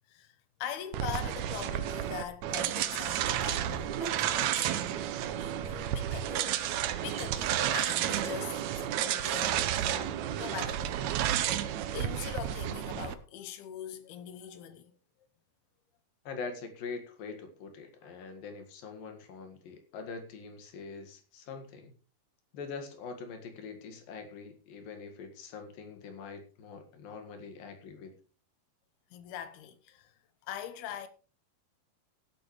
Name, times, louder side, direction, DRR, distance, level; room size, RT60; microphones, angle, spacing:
voice 1, 0.1-4.7 5.4-11.0 11.9-15.0 29.1-31.1, left 10 dB, 90° left, 3.0 m, -42 dB
sound 1, 0.9-13.1, right 11 dB, 85° right, 1.6 m, -31 dB
voice 2, 16.2-21.9 22.5-28.1, left 5 dB, 70° left, 3.3 m, -43 dB
16.5 x 10.0 x 3.1 m
omnidirectional pair, 4.3 m